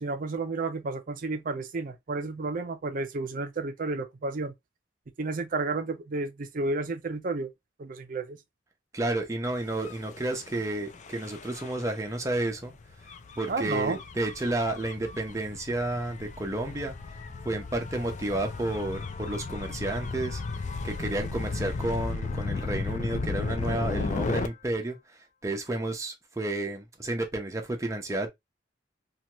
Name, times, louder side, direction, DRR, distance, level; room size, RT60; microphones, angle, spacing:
voice 1, 0.0-4.5 5.2-7.5 7.8-8.4 13.5-14.0, right 3 dB, 50° right, 0.5 m, -31 dB
voice 2, 8.9-12.7 13.4-16.9 17.4-25.0 25.4-28.3, right 1 dB, 20° right, 0.7 m, -31 dB
Gull seagull / Waves surf / Siren, 9.7-24.5, left 3 dB, 45° left, 0.4 m, -35 dB
2.8 x 2.3 x 2.9 m
head